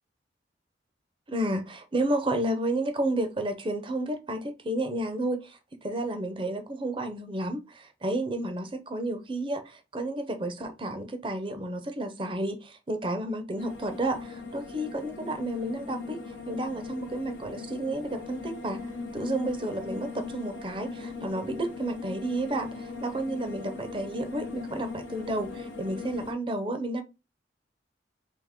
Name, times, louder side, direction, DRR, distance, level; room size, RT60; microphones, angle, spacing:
voice 1, 1.3-16.2 16.5-18.8 19.1-27.0, right 1 dB, 30° right, 0.6 m, -31 dB
sound 1, 13.6-26.3, left 4 dB, 90° left, 0.9 m, -39 dB
3.5 x 3.0 x 3.5 m
head